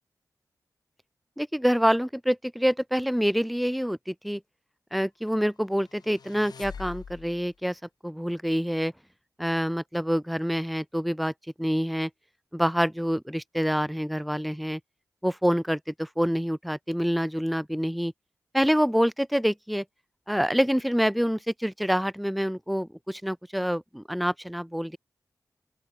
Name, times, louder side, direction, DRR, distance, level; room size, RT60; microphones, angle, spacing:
voice 1, 1.4-4.4 4.9-8.9 9.4-11.3 11.6-12.1 12.5-14.8 15.2-18.1 18.5-19.8 20.3-25.0, equal, ahead, 0.8 m, -26 dB
sound 1, 5.8-7.5, left 6 dB, 80° left, 6.6 m, -44 dB
open air
cardioid pair, 50°, 7 cm